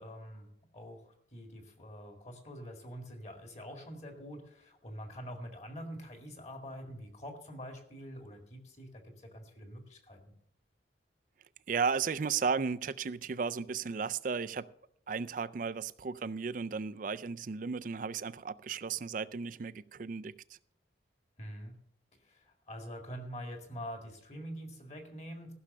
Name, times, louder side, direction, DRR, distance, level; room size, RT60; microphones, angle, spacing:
voice 1, 0.0-10.3 21.4-21.8 22.2-25.5, equal, 35° left, 2.1 m, -45 dB
voice 2, 11.7-14.7 15.1-20.3, right 5 dB, 45° right, 0.4 m, -34 dB
15.0 x 6.3 x 6.6 m
head